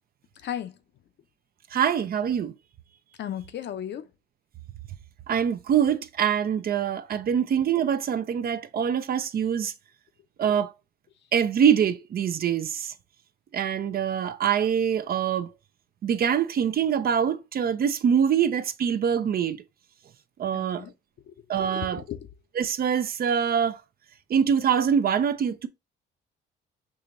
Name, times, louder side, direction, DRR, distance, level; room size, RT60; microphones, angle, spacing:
voice 1, 0.4-0.7 3.2-4.1 20.5-20.9 21.3-21.4 21.6-22.2, left 10 dB, 65° left, 0.6 m, -35 dB
voice 2, 1.7-2.5 5.3-9.7 10.4-10.7 11.3-12.9 13.5-15.5 16.0-19.6 20.4-20.8 21.5-22.0 22.6-23.8 24.3-25.7, right 8 dB, 50° right, 0.5 m, -24 dB
4.8 x 2.9 x 2.5 m
cardioid pair, 90°, 20 cm